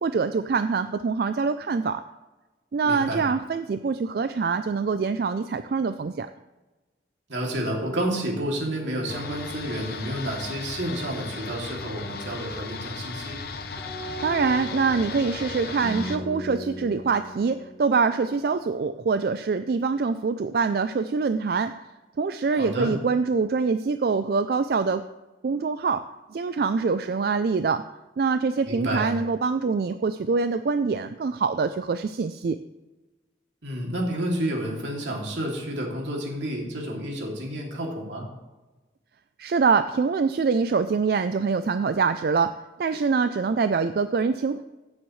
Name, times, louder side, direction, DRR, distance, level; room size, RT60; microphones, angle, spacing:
voice 1, 0.0-2.0 2.7-6.3 14.2-21.7 22.2-25.0 25.4-26.0 26.3-27.8 28.2-32.6 39.4-42.5 42.8-44.6, right 5 dB, 55° right, 10 dB, 0.3 m, -24 dB
voice 2, 2.8-3.2 7.3-13.4 22.5-22.9 28.6-29.1 33.6-38.3, right 1 dB, 80° right, -1 dB, 2.6 m, -30 dB
sound 1, 9.1-16.2, left 4 dB, 55° left, 0.7 m, -36 dB
sound 2, 13.8-18.9, right 1 dB, 5° left, 1.8 m, -38 dB
15.5 x 7.3 x 3.2 m, 1.1 s
head